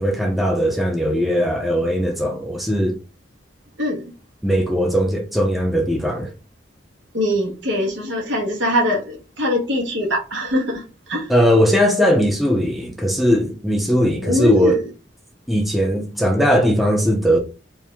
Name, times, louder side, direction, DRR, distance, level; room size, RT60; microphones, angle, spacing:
voice 1, 0.0-3.0 4.4-6.3 11.3-14.7 15.5-17.4, equal, ahead, 0.6 m, -19 dB
voice 2, 3.8-4.1 7.1-11.3 14.2-14.8, equal, 75° right, 1.6 m, -22 dB
4.6 x 2.7 x 3.4 m
head